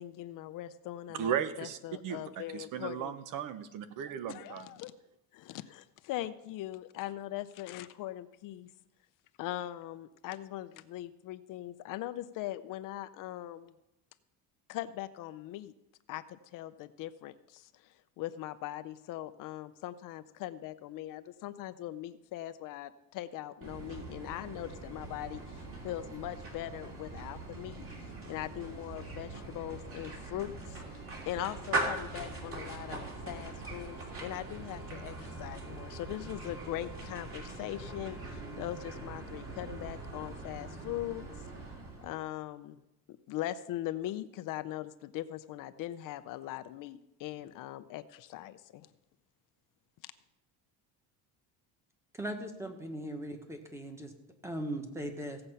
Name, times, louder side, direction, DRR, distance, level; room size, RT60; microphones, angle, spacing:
voice 1, 0.0-3.1 4.3-4.9 5.3-8.7 9.4-13.7 14.7-15.7 16.1-41.3 42.0-42.8 43.1-48.9 50.0-50.1, left 14 dB, 55° left, 12 dB, 0.6 m, -41 dB
voice 2, 1.1-1.8 2.0-4.7, right 9 dB, 55° right, 12 dB, 0.9 m, -36 dB
sound 1, 23.6-42.2, right 2 dB, 35° right, 3.2 m, -41 dB
voice 3, 52.1-54.1 54.4-55.4, right 1 dB, 5° right, 5 dB, 1.4 m, -39 dB
16.5 x 7.8 x 5.6 m, 0.89 s
cardioid pair, 155°, 38 cm